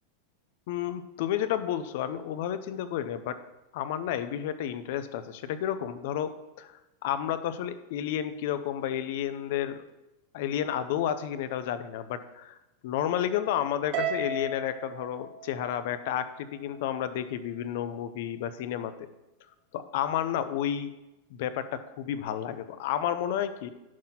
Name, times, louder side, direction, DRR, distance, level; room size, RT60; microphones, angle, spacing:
voice 1, 0.7-3.4 3.7-6.3 6.6-6.7 7.0-9.8 10.3-12.6 12.8-18.9 19.7-20.9 21.3-23.7, left 10 dB, 55° left, 12 dB, 0.7 m, -31 dB
Harp, 13.9-16.4, right 4 dB, 40° right, 1.3 m, -34 dB
10.5 x 4.2 x 5.7 m, 0.99 s
supercardioid pair, 170°, 0 cm